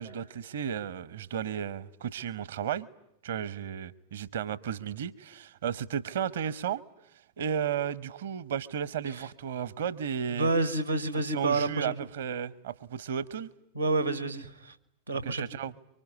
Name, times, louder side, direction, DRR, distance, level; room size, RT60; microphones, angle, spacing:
voice 1, 0.0-2.9 3.2-6.8 7.4-10.5 11.3-13.5 15.2-15.7, right 8 dB, 60° right, 1.0 m, -34 dB
voice 2, 10.3-11.9 13.7-14.7 15.1-15.4, right 3 dB, 85° right, 1.7 m, -29 dB
25.0 x 24.5 x 9.4 m
figure-of-eight pair, 90°, 0 cm